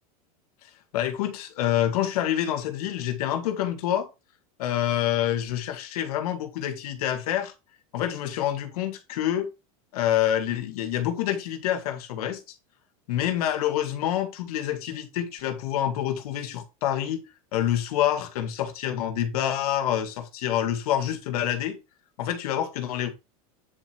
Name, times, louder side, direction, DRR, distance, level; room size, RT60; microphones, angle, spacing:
voice 1, 0.9-4.1 4.6-7.5 7.9-9.5 9.9-12.6 13.1-17.2 17.5-21.8 22.2-23.1, left 11 dB, 80° left, 1.9 m, -27 dB
9.8 x 4.4 x 4.5 m
supercardioid pair, 140°, 19 cm